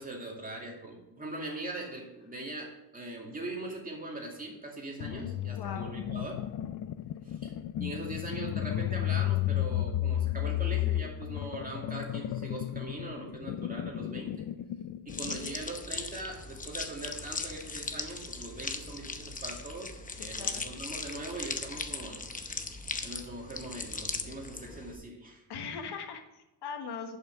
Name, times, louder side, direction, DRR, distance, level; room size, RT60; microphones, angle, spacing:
voice 1, 0.0-6.4 7.2-14.3 15.1-22.3 23.0-25.4, right 2 dB, 20° right, -1 dB, 2.3 m, -41 dB
sound 1, 5.0-15.5, left 13 dB, 55° left, 0.5 m, -33 dB
voice 2, 5.5-5.9 15.4-15.6 20.1-20.7 25.5-27.2, left 5 dB, 75° left, 6 dB, 1.3 m, -40 dB
sound 2, 15.1-25.0, left 3 dB, 20° left, 0.8 m, -38 dB
11.0 x 5.7 x 5.1 m, 0.96 s
cardioid pair, 130°, 40 cm